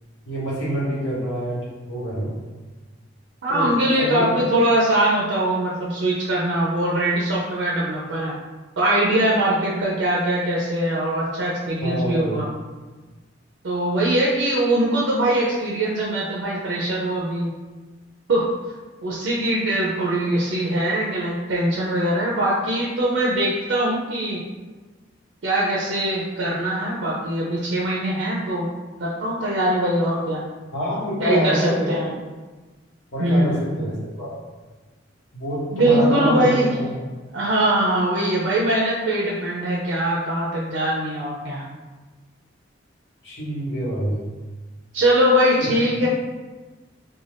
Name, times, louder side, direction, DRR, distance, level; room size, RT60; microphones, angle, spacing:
voice 1, 0.2-2.3 3.5-3.7 4.0-4.2 11.8-12.4 30.7-32.0 33.1-34.3 35.3-37.0 43.2-44.2 45.6-45.7, equal, 80° left, -7 dB, 1.1 m, -26 dB
voice 2, 3.4-8.3 8.8-12.5 13.6-17.5 18.3-18.5 19.0-24.4 25.4-28.7 29.0-30.4 31.2-32.1 33.2-33.7 35.7-36.7 37.3-41.6 44.9-46.1, right 1 dB, 70° right, -4 dB, 0.4 m, -22 dB
2.4 x 2.2 x 3.3 m, 1.3 s
head